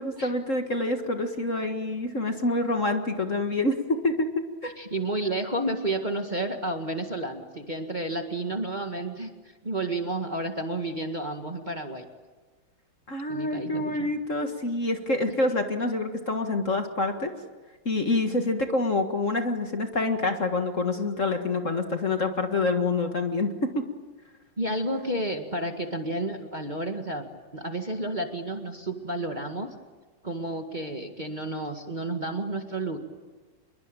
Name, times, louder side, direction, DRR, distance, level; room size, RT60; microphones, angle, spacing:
voice 1, 0.0-3.8 4.0-4.3 4.6-4.7 13.1-17.3 17.9-23.8, left 2 dB, 40° left, 5 dB, 1.9 m, -27 dB
voice 2, 4.8-9.3 9.6-12.1 13.3-14.1 24.6-27.2 27.5-29.7 30.2-33.0, right 1 dB, 20° right, 4 dB, 1.9 m, -31 dB
27.0 x 22.5 x 9.0 m, 1.3 s
omnidirectional pair, 2.3 m